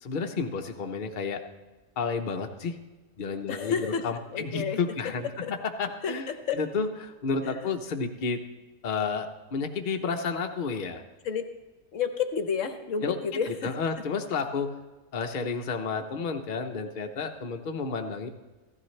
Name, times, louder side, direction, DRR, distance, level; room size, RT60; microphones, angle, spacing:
voice 1, 0.0-1.4 2.0-2.8 3.2-6.3 6.6-8.4 8.8-11.0 13.0-13.2 13.6-14.7 15.1-18.3, left 5 dB, 40° left, 4 dB, 0.9 m, -31 dB
voice 2, 3.5-4.8 5.4-5.5 6.0-6.6 7.4-7.7 11.2-11.4 11.9-13.7, left 6 dB, 65° left, 8 dB, 1.1 m, -31 dB
15.5 x 13.5 x 3.2 m, 1.2 s
omnidirectional pair, 1.4 m